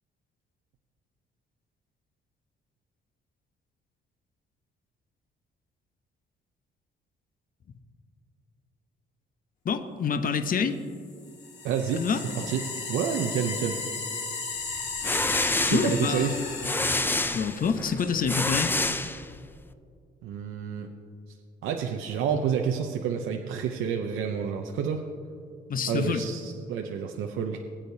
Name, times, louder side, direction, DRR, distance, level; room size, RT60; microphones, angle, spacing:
voice 1, 9.6-10.8 11.9-12.2 15.7-16.5 17.3-18.7 25.7-26.2, left 6 dB, 45° left, 8 dB, 0.8 m, -27 dB
sound 1, 11.1-17.9, left 4 dB, 65° left, 2.0 m, -35 dB
voice 2, 11.6-12.0 12.3-13.8 15.6-16.4 20.2-20.9 21.3-21.4 21.6-25.0 25.9-27.6, right 7 dB, 85° right, 3 dB, 0.7 m, -29 dB
sound 2, 14.8-19.6, left 2 dB, 10° left, 0.5 m, -28 dB
20.0 x 8.7 x 2.7 m, 2.4 s
cardioid pair, 90°, 20 cm